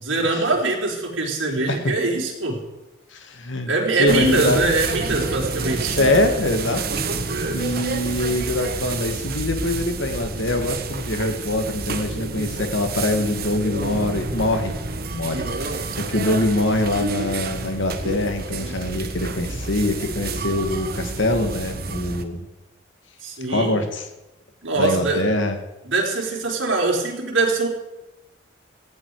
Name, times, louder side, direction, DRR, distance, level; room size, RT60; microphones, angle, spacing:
voice 1, 0.0-2.6 3.7-6.1 7.3-7.6 15.3-15.5 23.2-23.7 24.6-25.2 25.8-27.7, right 2 dB, 80° right, -1 dB, 4.5 m, -23 dB
voice 2, 3.1-3.7 4.0-4.6 6.0-7.0 7.5-14.8 15.1-22.4 23.5-24.1 24.8-25.6, left 1 dB, 75° left, 6 dB, 2.2 m, -24 dB
sound 1, 4.1-22.2, right 3 dB, 50° right, 1.5 m, -29 dB
18.0 x 15.5 x 5.0 m, 0.97 s
head